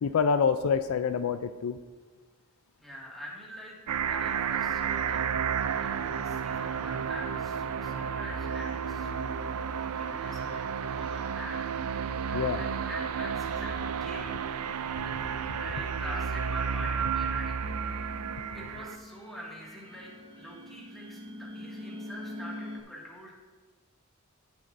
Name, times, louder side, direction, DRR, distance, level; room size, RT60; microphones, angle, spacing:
voice 1, 0.0-1.8 12.3-12.6, left 6 dB, 70° left, 11 dB, 0.4 m, -26 dB
voice 2, 2.8-5.3 5.8-9.4 9.9-11.6 12.3-14.3 15.0-18.2 18.5-23.4, equal, ahead, -5 dB, 2.0 m, -44 dB
sound 1, 3.9-19.0, right 7 dB, 85° right, 0.4 m, -32 dB
sound 2, 17.6-22.8, left 1 dB, 25° right, 1.5 m, -44 dB
16.5 x 6.9 x 2.6 m, 1.3 s
head